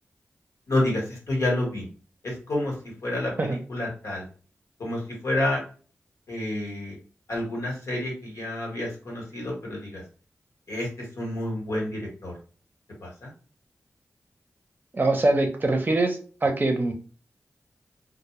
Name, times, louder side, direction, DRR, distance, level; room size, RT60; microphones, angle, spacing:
voice 1, 0.7-1.0 1.3-1.8 2.5-2.7 3.0-4.2 4.8-5.6 6.3-7.0 7.3-10.0 10.7-10.9 11.2-12.3 13.2-13.3, left 1 dB, 75° left, -2 dB, 1.1 m, -28 dB
voice 2, 14.9-16.9, right 2 dB, 40° right, 3 dB, 0.6 m, -23 dB
2.1 x 2.0 x 2.9 m, 0.39 s
cardioid pair, 55°, 5 cm